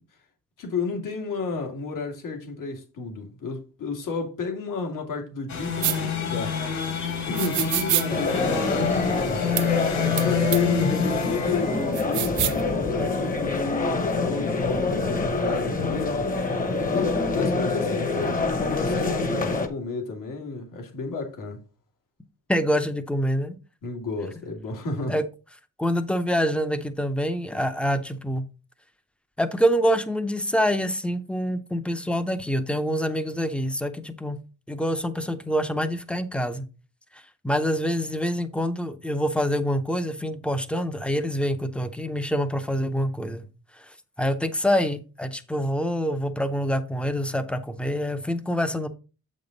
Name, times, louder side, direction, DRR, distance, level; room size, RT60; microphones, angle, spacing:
voice 1, 0.6-6.6 7.3-9.6 10.2-16.3 16.9-21.6 23.8-25.2, left 4 dB, 85° left, 2.2 m, -32 dB
sound 1, 5.5-12.5, left 7 dB, 60° left, 1.7 m, -28 dB
sound 2, 5.8-6.0 7.4-8.1 9.6-9.7 10.2-10.3 10.5-10.6 11.9-12.6, right 13 dB, 70° right, 0.6 m, -25 dB
sound 3, 8.1-19.7, left 3 dB, 25° left, 0.9 m, -26 dB
voice 2, 10.7-11.1 22.5-23.6 25.1-25.2 25.8-28.4 29.4-34.4 34.7-36.6 37.1-43.5 43.7-48.9, equal, 5° left, 0.5 m, -26 dB
7.5 x 5.3 x 3.9 m
wide cardioid pair, 170°, 31 cm